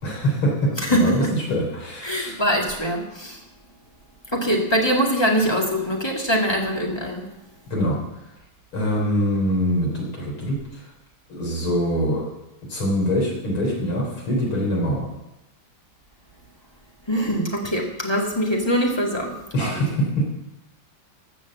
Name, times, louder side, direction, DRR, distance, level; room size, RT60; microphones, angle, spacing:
voice 1, 0.0-2.4 7.7-8.0 8.7-10.9 11.3-12.3 12.7-15.1 19.5-20.3, equal, 80° left, -2 dB, 4.5 m, -24 dB
voice 2, 0.8-1.3 2.0-3.3 4.3-7.2 17.1-19.3 19.6-19.9, equal, 15° left, 0 dB, 2.0 m, -23 dB
14.5 x 6.2 x 7.4 m, 0.93 s
omnidirectional pair, 2.3 m